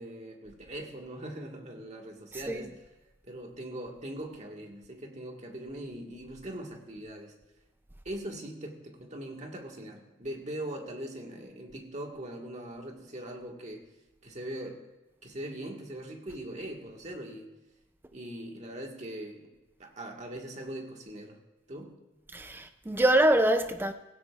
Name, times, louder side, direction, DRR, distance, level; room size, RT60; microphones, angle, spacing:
voice 1, 0.0-2.7 3.2-7.3 8.0-13.9 14.2-14.9 15.2-17.5 18.1-19.5 19.8-21.4 21.7-21.9, right 1 dB, 40° right, 1.7 m, -41 dB
voice 2, 2.3-2.6 22.3-23.9, right 1 dB, 10° right, 0.4 m, -25 dB
16.0 x 16.0 x 2.4 m
head